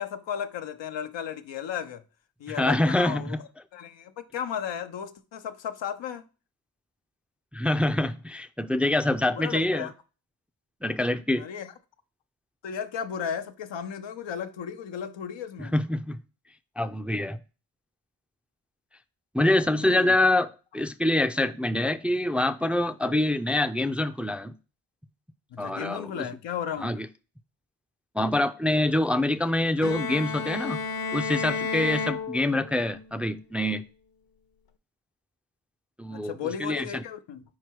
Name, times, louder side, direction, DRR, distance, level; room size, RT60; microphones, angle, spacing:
voice 1, 0.0-2.0 2.4-3.4 3.7-6.2 9.3-9.9 11.4-11.7 12.6-15.7 19.8-20.2 25.5-27.1 31.8-31.9 36.1-37.4, left 8 dB, 85° left, 0.7 m, -35 dB
voice 2, 2.5-3.4 7.5-9.9 10.8-11.4 15.6-16.2 16.8-17.4 19.3-24.5 25.6-26.3 26.8-27.1 28.1-30.8 31.1-33.8 36.0-36.4 36.6-37.0, left 1 dB, 5° right, 0.4 m, -25 dB
Bowed string instrument, 29.8-32.9, left 5 dB, 55° left, 0.8 m, -31 dB
4.8 x 4.6 x 4.5 m
cardioid pair, 50°, 44 cm